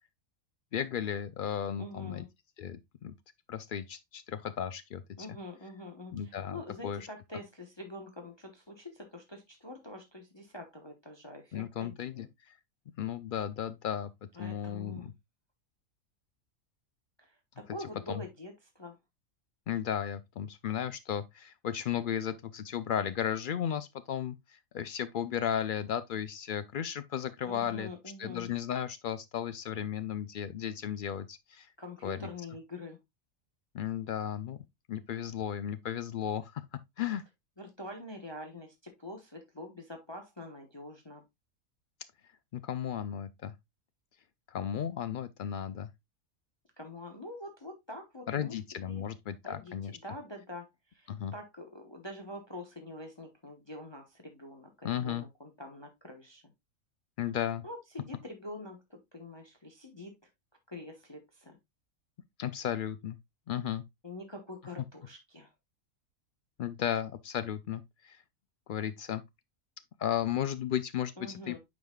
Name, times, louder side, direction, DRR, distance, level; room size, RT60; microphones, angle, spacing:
voice 1, 0.7-2.2 2.6-3.1 3.5-5.0 6.1-7.1 11.5-12.3 13.0-14.1 14.4-15.1 18.1-18.2 19.7-27.9 28.2-31.7 32.0-32.3 33.7-34.6 34.9-37.2 42.5-43.5 44.5-45.9 48.3-50.0 51.1-51.3 54.8-55.2 57.2-57.6 62.4-63.2 63.5-63.8 66.6-68.2 68.7-69.2 70.0-71.6, left 9 dB, 75° left, 0.4 m, -34 dB
voice 2, 1.8-2.3 5.2-12.3 14.4-15.1 17.2-17.4 17.7-19.0 27.4-28.5 31.8-33.0 37.6-41.2 46.8-48.5 48.9-49.0 49.4-49.7 50.0-56.4 57.6-60.1 60.7-61.6 64.0-65.5 71.2-71.6, left 1 dB, 20° left, 1.0 m, -45 dB
9.2 x 5.0 x 2.2 m
omnidirectional pair, 1.4 m